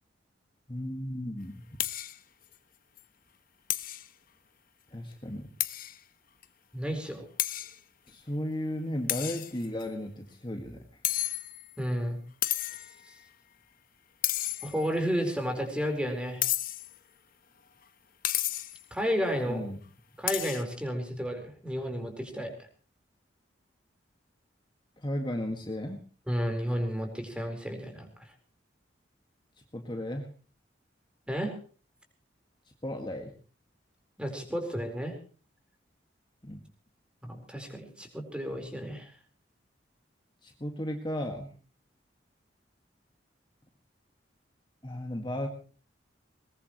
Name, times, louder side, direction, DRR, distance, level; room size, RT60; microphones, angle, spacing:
voice 1, 0.7-1.6 4.9-5.5 8.1-11.0 19.5-19.8 25.0-26.0 29.7-30.3 32.8-33.3 36.4-36.6 40.4-41.5 44.8-45.5, left 1 dB, 25° left, 3 dB, 2.0 m, -35 dB
Sword hits, 1.8-2.2 2.5-2.6 3.0-3.1 3.7-4.1 5.6-6.0 6.4-6.5 7.4-7.8 9.1-9.8 11.0-11.8 12.4-12.9 14.2-15.0 16.4-17.0 18.2-18.8 20.3-20.6, left 14 dB, 50° left, 1.1 m, -31 dB
voice 2, 6.7-7.3 11.8-12.2 13.1-13.2 14.6-16.5 18.9-19.6 20.2-22.5 26.3-28.1 31.3-31.6 34.2-35.1 37.2-39.1, equal, 5° right, 4 dB, 4.5 m, -32 dB
21.5 x 21.0 x 3.2 m, 0.39 s
head